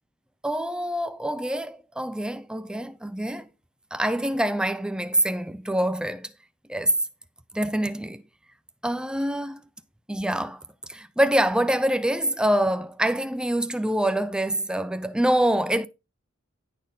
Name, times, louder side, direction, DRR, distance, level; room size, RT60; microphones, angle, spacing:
voice 1, 0.4-3.5 3.9-6.3 6.7-6.9 7.5-8.2 8.8-9.6 10.1-10.6 10.9-15.9, right 1 dB, 5° right, 0.6 m, -25 dB
10.5 x 6.5 x 4.0 m
head